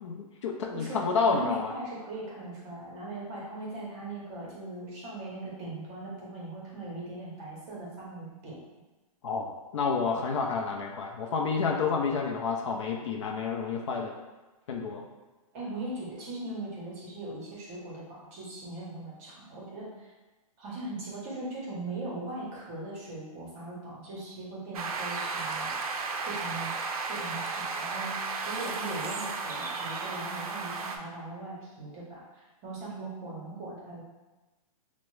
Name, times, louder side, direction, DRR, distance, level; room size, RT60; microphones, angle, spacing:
voice 1, 0.0-1.7 9.2-14.1 14.7-15.1, left 5 dB, 50° left, 1 dB, 0.4 m, -29 dB
voice 2, 0.7-8.6 15.5-20.1 20.6-25.7 26.2-26.7 27.1-34.0, right 2 dB, 20° right, -5 dB, 0.7 m, -39 dB
sound 1, 24.7-31.0, right 4 dB, 75° right, 0.4 m, -34 dB
3.3 x 2.0 x 3.1 m, 1.2 s
hypercardioid pair, 170°, 19 cm